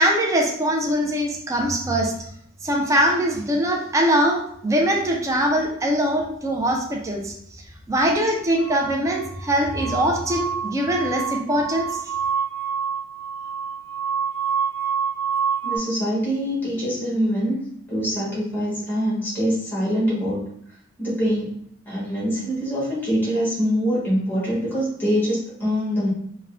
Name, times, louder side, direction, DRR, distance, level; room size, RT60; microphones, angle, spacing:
voice 1, 0.0-2.1 2.6-7.3 7.9-12.0, right 1 dB, 15° right, 0 dB, 0.3 m, -22 dB
sound 1, 8.6-15.8, right 6 dB, 85° right, 0.8 m, -27 dB
voice 2, 15.6-17.6 17.9-20.4 21.0-21.5 21.9-26.1, equal, 10° left, -7 dB, 1.1 m, -24 dB
3.5 x 2.1 x 2.3 m, 0.69 s
head